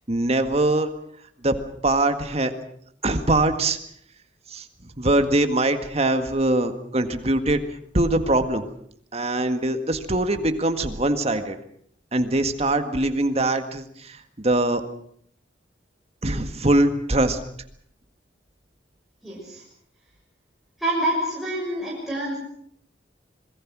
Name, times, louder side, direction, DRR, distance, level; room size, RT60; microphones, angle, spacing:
voice 1, 0.1-0.9 1.4-2.5 3.0-3.8 4.5-4.7 5.0-7.6 7.9-8.7 9.1-11.6 12.1-14.8 16.2-17.4, right 2 dB, 35° right, 8 dB, 1.8 m, -22 dB
voice 2, 19.2-19.6 20.8-22.4, right 1 dB, ahead, -6 dB, 6.4 m, -27 dB
26.5 x 22.0 x 6.2 m, 0.67 s
head